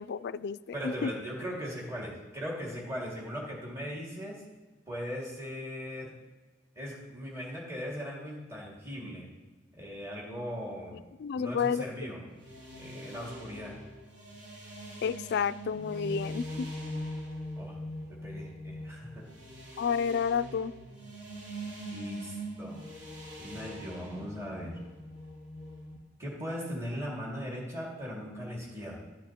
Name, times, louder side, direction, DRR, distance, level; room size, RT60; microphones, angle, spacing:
voice 1, 0.0-0.6 0.8-1.1 11.2-11.8 15.0-16.7 19.8-20.7, left 6 dB, 60° left, 18 dB, 0.3 m, -30 dB
voice 2, 0.7-4.4 4.9-6.1 6.8-9.3 9.7-11.0 11.4-12.2 12.7-13.8 17.6-17.8 18.1-19.2 21.9-22.8 23.4-24.8 26.2-29.0, equal, 15° right, -4 dB, 2.2 m, -39 dB
sound 1, 12.3-26.0, equal, 85° right, 2.7 m, -42 dB
12.0 x 10.5 x 2.9 m, 1.2 s
head